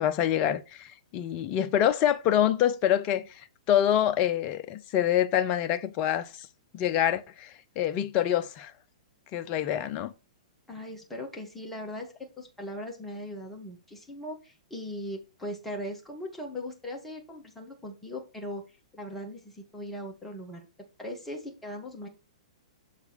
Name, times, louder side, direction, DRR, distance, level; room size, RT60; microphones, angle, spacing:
voice 1, 0.0-6.5 6.7-8.7 9.3-10.1, left 10 dB, 35° left, 0.5 m, -26 dB
voice 2, 10.7-18.6 18.9-20.7 21.0-22.1, left 1 dB, 5° left, 1.9 m, -39 dB
6.8 x 4.1 x 4.2 m
figure-of-eight pair, 115°, 4 cm